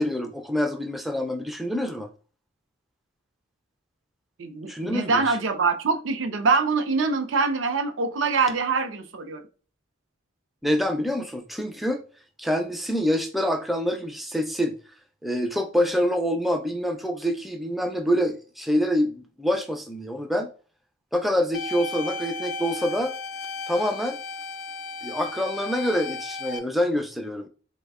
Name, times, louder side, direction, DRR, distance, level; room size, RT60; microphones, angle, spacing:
voice 1, 0.0-2.1 4.7-5.4 10.6-12.0 12.4-14.8 15.2-20.5 21.1-23.1 23.7-24.2 25.0-27.5, equal, ahead, 0.3 m, -26 dB
voice 2, 4.4-9.4, right 4 dB, 85° right, 0.5 m, -24 dB
sound 1, 21.5-26.6, left 4 dB, 80° left, 0.3 m, -35 dB
3.3 x 2.1 x 3.5 m
head